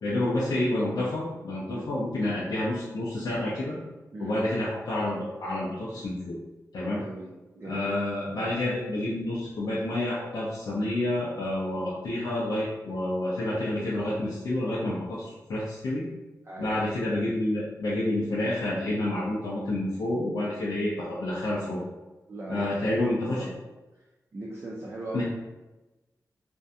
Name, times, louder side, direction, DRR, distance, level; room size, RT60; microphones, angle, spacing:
voice 1, 0.0-3.8 4.2-6.4 6.7-7.0 7.7-16.0 16.6-21.8 22.5-23.5 25.1-25.2, left 1 dB, 85° left, -7 dB, 0.5 m, -29 dB
voice 2, 6.9-8.0 16.4-16.8 22.3-23.6 24.3-25.2, right 2 dB, 40° right, -4 dB, 0.4 m, -39 dB
2.5 x 2.1 x 2.6 m, 1.1 s
wide cardioid pair, 140°, 6 cm